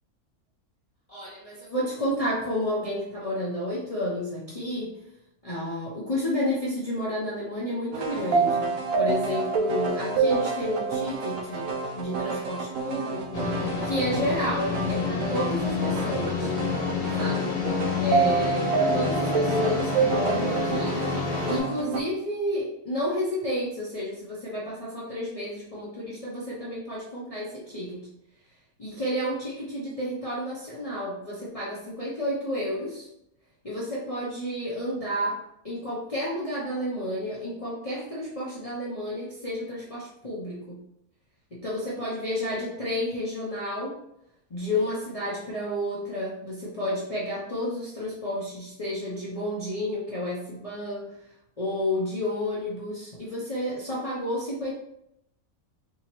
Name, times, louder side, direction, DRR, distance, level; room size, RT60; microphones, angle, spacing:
voice 1, 1.1-4.9 5.4-13.5 13.8-16.5 17.2-17.6 18.0-28.1 28.8-33.1 33.6-35.4 35.6-40.8 41.5-44.0 44.5-51.1 51.6-54.7, equal, 35° left, -7 dB, 0.6 m, -31 dB
sound 1, 7.9-22.0, right 4 dB, 75° right, 1.0 m, -28 dB
sound 2, 13.3-21.6, left 5 dB, 90° left, 1.3 m, -29 dB
3.7 x 2.9 x 3.0 m, 0.79 s
omnidirectional pair, 1.6 m